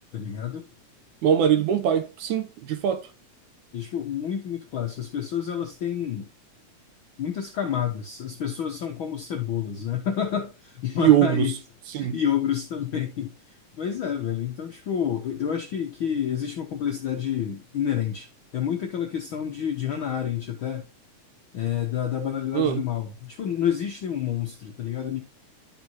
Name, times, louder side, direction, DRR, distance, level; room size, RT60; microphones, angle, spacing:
voice 1, 0.1-0.7 3.7-6.3 7.2-11.6 12.0-18.3 18.5-20.9 21.5-25.2, left 9 dB, 70° left, 1.2 m, -29 dB
voice 2, 1.2-3.1 11.0-11.5 11.9-12.2 22.5-22.8, right 10 dB, 75° right, 2.1 m, -21 dB
12.0 x 5.3 x 2.9 m
omnidirectional pair, 3.6 m